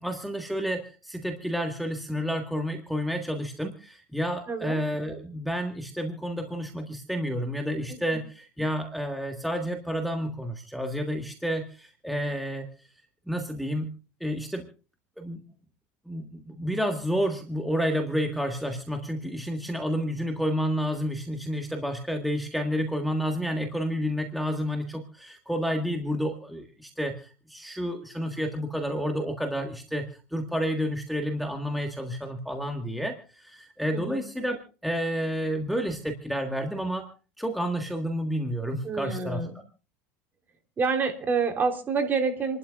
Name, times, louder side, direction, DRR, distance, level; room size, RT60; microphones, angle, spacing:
voice 1, 0.0-12.9 13.3-13.9 14.2-14.7 15.2-15.4 16.1-37.1 37.4-39.4, equal, ahead, 3 dB, 1.6 m, -30 dB
voice 2, 4.5-4.8 7.9-8.0 33.9-34.2 38.8-39.5 40.8-42.6, right 5 dB, 25° right, 4 dB, 3.4 m, -27 dB
28.5 x 12.0 x 2.4 m, 0.36 s
supercardioid pair, 130°, 7 cm